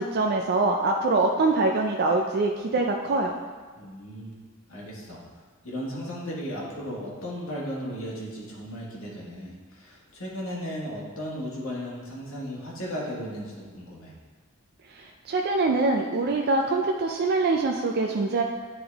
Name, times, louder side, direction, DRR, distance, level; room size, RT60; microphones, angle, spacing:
voice 1, 0.0-3.3 14.9-18.4, right 3 dB, 50° right, 2 dB, 0.4 m, -24 dB
voice 2, 3.8-4.3 4.7-5.2 5.6-14.1, equal, 75° left, -5 dB, 1.7 m, -35 dB
9.3 x 3.7 x 3.4 m, 1.5 s
head